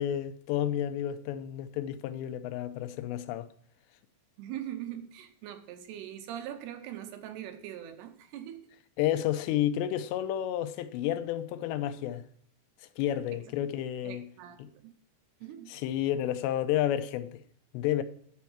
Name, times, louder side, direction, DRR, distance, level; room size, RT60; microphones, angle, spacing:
voice 1, 0.0-3.5 9.0-12.2 13.0-14.2 14.6-14.7 15.7-17.4 17.7-18.0, left 11 dB, 85° left, 2.9 m, -31 dB
voice 2, 4.4-8.7 13.3-13.4 14.0-14.9 15.4-15.7, right 11 dB, 80° right, 2.6 m, -42 dB
10.5 x 4.5 x 7.1 m
omnidirectional pair, 5.0 m